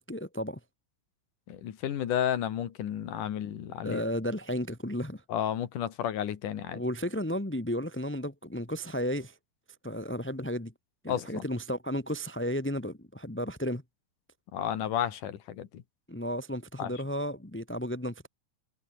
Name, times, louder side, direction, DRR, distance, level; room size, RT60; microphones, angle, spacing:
voice 1, 0.1-0.6 3.8-5.2 6.7-9.3 9.8-10.7 11.0-13.8 16.1-18.3, equal, 10° left, 0.7 m, -33 dB
voice 2, 1.5-4.0 5.3-6.8 11.1-11.5 14.5-15.8 16.8-16.9, left 10 dB, 75° left, 3.4 m, -32 dB
omnidirectional pair, 3.7 m